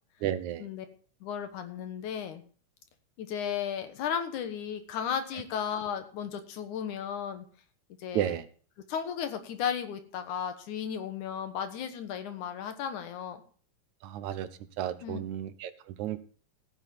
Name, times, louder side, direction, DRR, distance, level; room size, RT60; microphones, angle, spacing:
voice 1, 0.2-0.7 8.1-8.4 14.0-14.5 14.8-16.2, right 11 dB, 80° right, 12 dB, 2.3 m, -32 dB
voice 2, 1.2-2.4 3.2-7.4 8.0-8.4 8.9-13.4 15.0-15.2, left 8 dB, 85° left, 8 dB, 2.8 m, -34 dB
15.0 x 9.1 x 4.3 m, 0.42 s
omnidirectional pair, 3.4 m